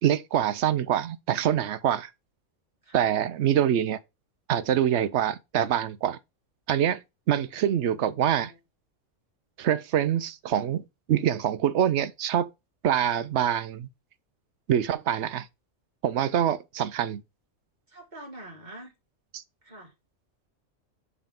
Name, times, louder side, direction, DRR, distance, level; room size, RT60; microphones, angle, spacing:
voice 1, 0.0-2.1 2.9-4.0 4.5-6.2 6.7-7.0 7.3-8.5 9.6-10.8 11.1-12.5 12.8-13.9 14.7-15.5 16.0-17.2 19.3-19.4, right 10 dB, 70° right, 0.8 m, -25 dB
voice 2, 2.8-3.1 7.6-8.6 17.9-18.9 19.6-19.9, right 1 dB, 35° right, 2.3 m, -46 dB
8.0 x 3.7 x 3.5 m
omnidirectional pair, 1.3 m